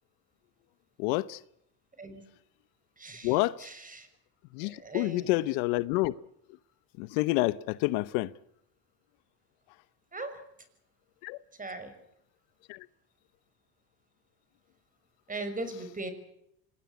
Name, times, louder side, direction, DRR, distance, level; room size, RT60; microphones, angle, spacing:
voice 1, 1.0-1.4 3.2-3.7 4.5-6.1 7.0-8.3 11.2-11.4 12.7-12.9, left 20 dB, 75° left, 1.0 m, -28 dB
voice 2, 3.0-3.3 3.6-4.1 4.6-5.3 10.1-10.3 11.6-11.9 15.3-16.1, right 2 dB, 15° right, 5.9 m, -38 dB
26.0 x 19.5 x 8.3 m
supercardioid pair, 120°, 48 cm